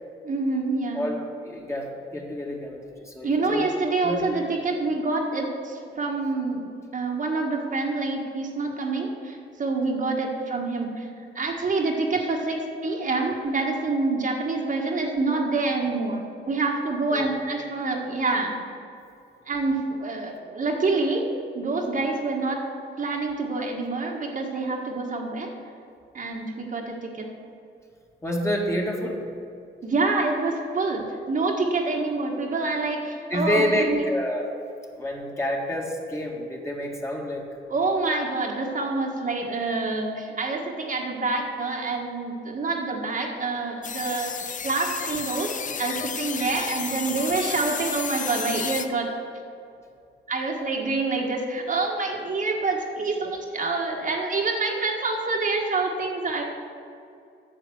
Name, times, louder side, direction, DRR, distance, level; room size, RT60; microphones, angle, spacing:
voice 1, 0.2-1.1 3.2-11.1 11.3-18.5 19.5-21.3 21.5-22.6 23.0-25.5 26.1-27.3 29.8-34.0 37.7-44.3 44.6-49.1 50.3-56.4, right 3 dB, 40° right, 0 dB, 1.7 m, -27 dB
voice 2, 1.4-4.2 17.1-17.3 28.2-29.3 33.3-34.5 35.0-37.4, equal, 15° left, -1 dB, 1.9 m, -28 dB
sound 1, 43.8-48.9, left 6 dB, 40° left, 0.7 m, -32 dB
9.2 x 7.0 x 8.0 m, 2.5 s
cardioid pair, 90°, 20 cm